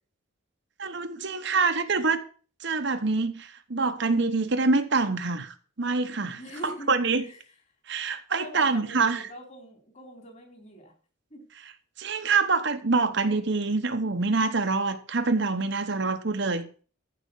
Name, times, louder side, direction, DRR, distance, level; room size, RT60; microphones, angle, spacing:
voice 1, 0.8-2.2 2.6-7.3 7.9-9.2 12.0-16.6, right 4 dB, 55° right, 1.0 m, -26 dB
voice 2, 6.4-6.9 7.2-7.4 8.4-10.9 11.3-11.4, equal, 35° left, 4.0 m, -42 dB
15.0 x 5.2 x 8.2 m
head